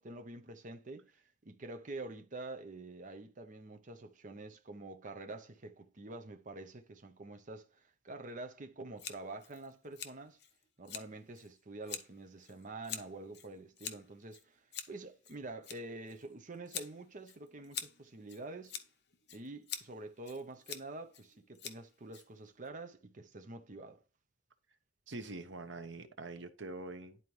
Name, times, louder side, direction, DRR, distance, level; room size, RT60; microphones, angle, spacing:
voice 1, 0.0-10.4 10.8-18.8 19.3-24.0, right 2 dB, 45° right, 0.8 m, -47 dB
Scissors, 9.0-22.7, left 8 dB, 65° left, 0.9 m, -47 dB
voice 2, 25.1-27.2, right 2 dB, 80° right, 1.0 m, -44 dB
10.5 x 4.2 x 3.1 m
head